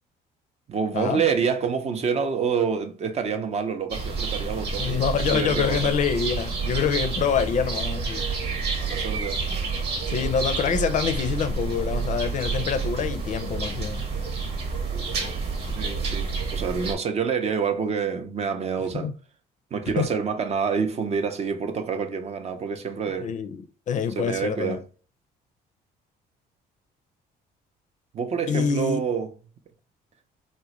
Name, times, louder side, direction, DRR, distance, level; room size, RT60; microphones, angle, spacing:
voice 1, 0.7-5.9 8.8-9.4 15.7-19.1 19.7-23.3 24.2-24.8 28.1-29.3, right 6 dB, 40° right, 0.5 m, -27 dB
sound 1, 3.9-16.9, right 4 dB, 75° right, 1.1 m, -29 dB
voice 2, 4.8-8.3 10.1-14.1 18.9-19.1 20.0-20.1 23.2-24.8 28.5-29.0, left 7 dB, 50° left, 0.4 m, -26 dB
3.7 x 2.1 x 2.9 m
cardioid pair, 110°, 17 cm